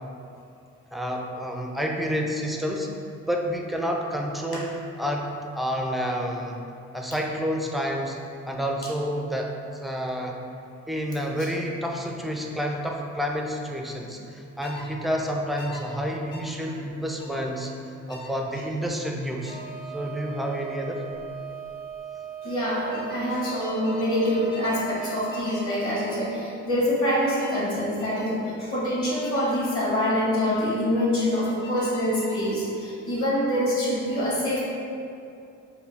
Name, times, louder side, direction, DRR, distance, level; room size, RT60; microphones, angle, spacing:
voice 1, 0.9-2.9 3.2-6.6 6.9-8.2 8.5-10.4 10.9-17.7 18.1-19.6 19.9-21.0, equal, ahead, 1 dB, 0.3 m, -29 dB
sound 1, 14.6-14.9 15.6-15.8 16.3-16.5 17.2-17.4 18.1-18.3 19.4-19.6 21.1-21.3 21.6-22.0 22.9-24.8 25.3-25.7 26.0-26.3 27.1-27.6 28.0-28.3 29.2-29.5 31.4-32.6, left 2 dB, 85° left, 1.1 m, -44 dB
Wind instrument woodwind instrument, 19.4-26.2, right 8 dB, 60° left, 1.0 m, -38 dB
voice 2, 22.4-34.6, equal, 45° left, -6 dB, 1.4 m, -25 dB
4.5 x 2.2 x 3.5 m, 2.6 s
cardioid pair, 90°, 30 cm